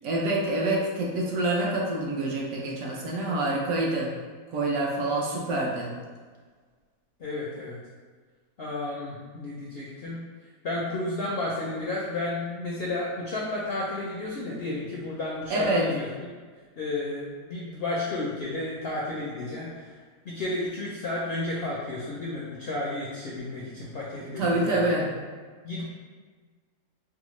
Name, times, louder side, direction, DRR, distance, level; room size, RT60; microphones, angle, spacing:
voice 1, 0.0-4.1 4.5-5.9 15.5-15.9 24.4-25.1, right 2 dB, 65° right, -3 dB, 1.0 m, -26 dB
voice 2, 7.2-7.8 8.6-10.2 10.6-16.1 16.8-20.0 20.2-25.2 25.6-25.8, left 2 dB, 65° left, -5 dB, 0.6 m, -32 dB
4.6 x 2.0 x 3.0 m, 1.5 s
omnidirectional pair, 1.6 m